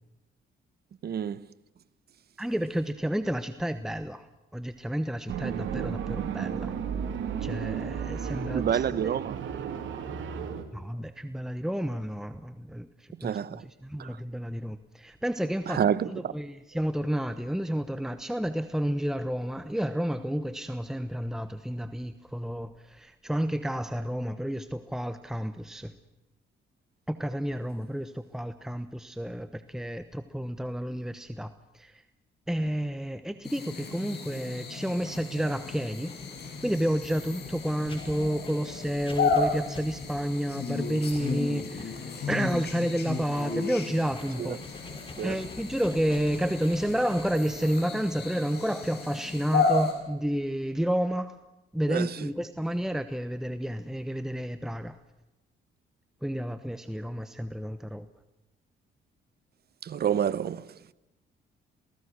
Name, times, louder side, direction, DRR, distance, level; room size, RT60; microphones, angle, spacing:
voice 1, 1.0-1.5 8.5-9.4 13.2-13.6 14.0-14.2 15.7-16.3 44.4-44.6 45.2-45.4 51.9-52.2 59.8-60.7, right 8 dB, 55° right, 1.0 m, -28 dB
voice 2, 2.4-6.7 7.4-9.2 10.7-25.9 27.1-32.0 32.5-36.1 36.6-44.6 44.8-44.9 45.2-51.4 51.7-55.0 56.2-58.1, equal, ahead, 1.0 m, -31 dB
sound 1, 5.3-10.6, right 8 dB, 75° right, 2.6 m, -33 dB
sound 2, 33.4-49.9, left 4 dB, 55° left, 7.2 m, -33 dB
Writing, 35.1-49.8, left 2 dB, 25° left, 5.9 m, -48 dB
28.0 x 18.0 x 6.4 m
cardioid pair, 90°, 20 cm